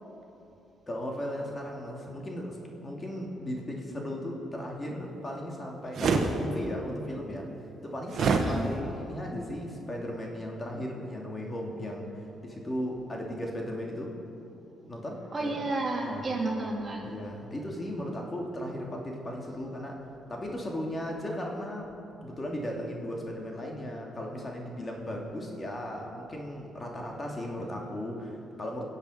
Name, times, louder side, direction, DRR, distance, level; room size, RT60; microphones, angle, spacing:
voice 1, 0.9-7.5 7.8-14.2 14.9-15.6 16.0-16.4 17.0-20.0 20.3-21.9 22.2-28.8, equal, 25° left, 0 dB, 2.5 m, -36 dB
sound 1, 5.9-6.3 8.1-8.5, right 5 dB, 60° right, 1.4 m, -24 dB
voice 2, 8.4-8.7 15.3-17.1, right 2 dB, 30° right, -2 dB, 3.3 m, -31 dB
22.5 x 8.2 x 5.7 m, 2.9 s
cardioid pair, 90°, 0 cm